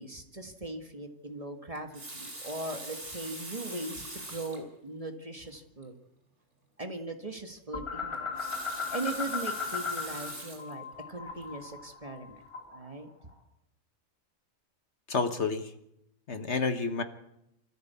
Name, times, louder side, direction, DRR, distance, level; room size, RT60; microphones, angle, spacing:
voice 1, 0.0-5.9 6.8-8.6 8.9-12.4 12.7-13.1, right 2 dB, 25° right, 5 dB, 1.8 m, -39 dB
Water tap faucet, 1.7-4.7 5.4-5.6 5.8-5.9 8.1-10.7 11.4-11.6, right 1 dB, 55° right, 6.0 m, -43 dB
sound 1, 7.7-10.3 10.6-12.9, left 5 dB, 20° left, 3.6 m, -36 dB
voice 2, 15.1-15.7 16.3-17.0, left 4 dB, 55° left, 9 dB, 1.4 m, -29 dB
25.0 x 14.5 x 8.3 m, 0.82 s
omnidirectional pair, 1.4 m